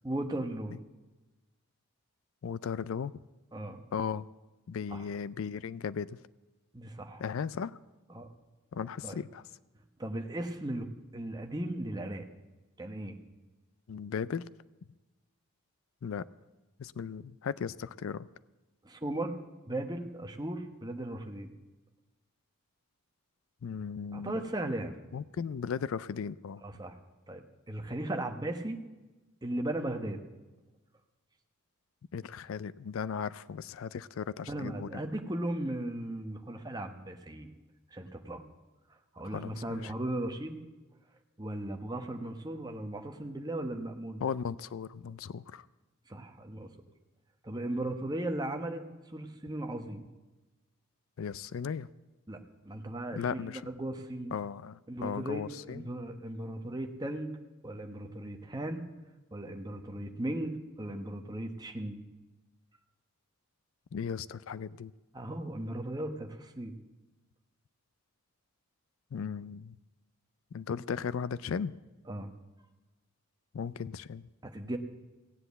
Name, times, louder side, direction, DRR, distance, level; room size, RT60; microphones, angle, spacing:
voice 1, 0.0-0.8 3.5-3.8 4.9-5.1 6.7-7.2 8.1-8.3 9.0-9.2 10.0-10.9 11.1-12.3 12.8-13.2 18.8-19.4 19.7-21.5 24.1-24.9 26.6-27.0 27.3-28.8 29.4-30.2 34.5-37.5 37.9-38.4 39.1-40.6 41.4-44.2 46.1-46.7 47.4-50.0 52.3-52.4 52.6-53.4 53.7-54.3 54.9-57.4 57.6-58.8 59.3-62.0 65.1-66.7 72.1-72.3 74.4-74.8, right 1 dB, 20° right, 5 dB, 1.0 m, -37 dB
voice 2, 2.4-3.1 3.9-4.2 4.7-6.2 7.2-7.8 8.7-9.4 13.9-14.5 16.0-16.2 16.8-18.3 23.6-24.4 25.1-26.6 32.1-35.0 39.2-39.9 44.2-45.7 51.2-51.9 53.2-53.7 54.3-55.8 63.9-64.9 69.1-69.8 70.5-71.8 73.5-74.2, left 6 dB, 65° left, 17 dB, 0.4 m, -36 dB
16.5 x 7.8 x 8.1 m, 1.1 s
head